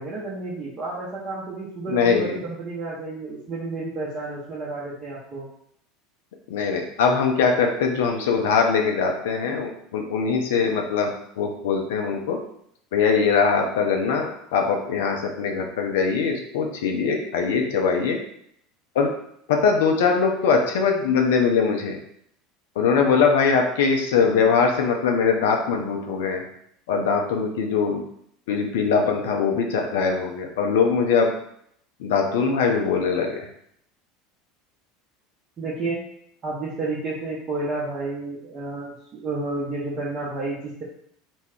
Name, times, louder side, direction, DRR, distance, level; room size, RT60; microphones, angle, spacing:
voice 1, 0.0-5.5 35.6-36.0 36.4-40.8, right 3 dB, 35° right, -7 dB, 0.7 m, -31 dB
voice 2, 1.9-2.4 6.5-12.4 12.9-18.2 19.0-19.1 19.5-22.0 22.8-26.4 26.9-28.0 28.5-31.3 32.0-33.5, left 5 dB, 65° left, 2 dB, 0.4 m, -22 dB
2.3 x 2.0 x 3.4 m, 0.70 s
figure-of-eight pair, 75°, 0 cm